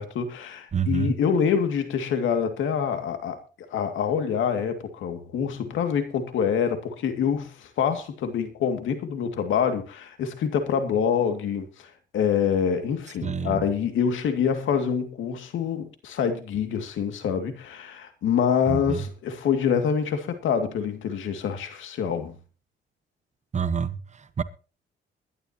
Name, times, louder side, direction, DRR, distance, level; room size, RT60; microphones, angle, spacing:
voice 1, 0.0-3.4 3.7-22.4, left 7 dB, 75° left, 2.4 m, -26 dB
voice 2, 0.7-1.1 13.2-13.6 18.7-19.0 23.5-24.4, right 6 dB, 35° right, 1.1 m, -27 dB
22.5 x 11.0 x 3.0 m
cardioid pair, 90°, 20 cm